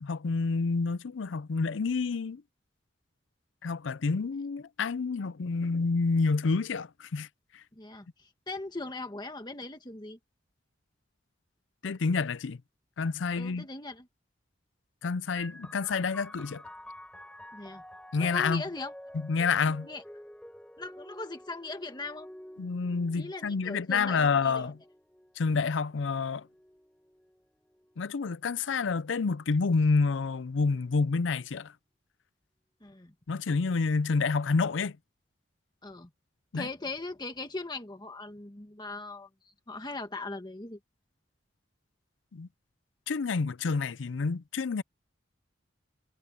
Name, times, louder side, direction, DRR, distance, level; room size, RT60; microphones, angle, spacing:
voice 1, 0.0-2.4 3.6-7.3 7.5-7.6 11.8-12.6 13.0-13.7 15.0-16.6 18.1-18.6 19.2-19.9 22.6-24.8 25.4-26.5 28.0-31.7 33.3-35.0 36.5-36.7 42.3-42.5 43.1-44.8, left 4 dB, 75° left, 0.5 m, -28 dB
voice 2, 7.7-10.2 13.3-14.1 17.5-17.8 18.1-18.9 19.9-20.0 20.8-22.3 23.2-24.7 32.8-33.1 35.8-36.1 36.5-40.8, left 2 dB, 25° left, 1.5 m, -40 dB
sound 1, 15.4-28.6 29.5-30.2, left 1 dB, 5° left, 4.1 m, -50 dB
head